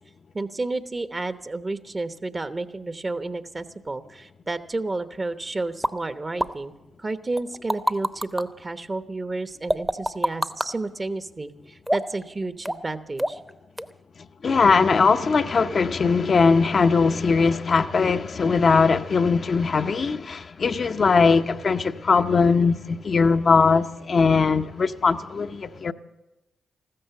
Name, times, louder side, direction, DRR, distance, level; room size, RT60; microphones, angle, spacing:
voice 1, 0.3-6.7 7.0-13.4, right 2 dB, 35° right, 1.0 m, -31 dB
sound 1, 5.8-5.9 6.4-6.5 7.4-8.4 9.7-10.7 11.9-12.2 12.6-12.9 13.2-13.5 13.8-13.9, equal, 10° right, 0.8 m, -24 dB
voice 2, 14.4-25.9, left 4 dB, 55° left, 0.7 m, -20 dB
14.5 x 13.5 x 7.0 m
hypercardioid pair, 40°, 0 cm